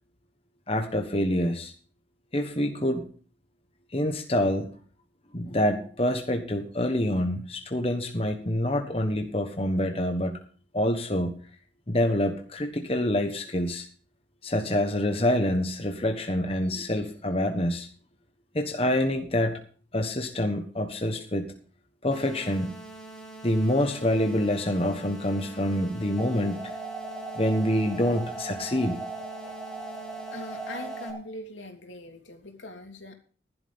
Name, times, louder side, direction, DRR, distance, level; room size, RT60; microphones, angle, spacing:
voice 1, 0.7-1.7 2.3-3.1 3.9-4.7 5.3-10.4 10.7-11.4 11.9-13.9 14.4-17.9 18.5-19.6 19.9-21.5 22.0-22.7 23.4-26.6 27.4-29.0 29.4-29.5, left 1 dB, 30° left, 5 dB, 1.3 m, -26 dB
sound 1, 22.1-31.1, right 2 dB, 5° left, 2.3 m, -44 dB
sound 2, 26.2-31.2, right 3 dB, 15° right, 2.3 m, -38 dB
voice 2, 30.3-33.1, left 1 dB, 90° left, 3 dB, 3.1 m, -41 dB
15.0 x 11.5 x 3.6 m, 0.42 s
head